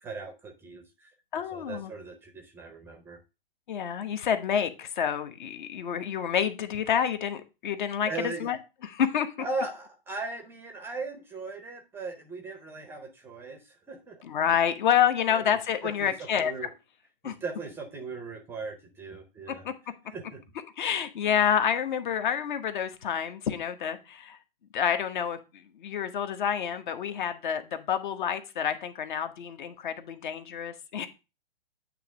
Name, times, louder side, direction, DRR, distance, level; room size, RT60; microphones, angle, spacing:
voice 1, 0.0-1.1 1.5-3.2 8.1-8.5 9.4-14.2 15.3-15.4 15.8-16.1 16.4-16.7 17.2-19.6 20.1-20.4, right 3 dB, 10° right, 6 dB, 0.6 m, -38 dB
voice 2, 1.3-1.9 3.7-8.6 8.8-9.3 14.2-16.5 17.2-17.3 19.6-19.7 20.8-24.4 24.7-31.1, left 8 dB, 55° left, 9 dB, 1.1 m, -28 dB
8.8 x 3.0 x 6.1 m, 0.28 s
hypercardioid pair, 145°, 29 cm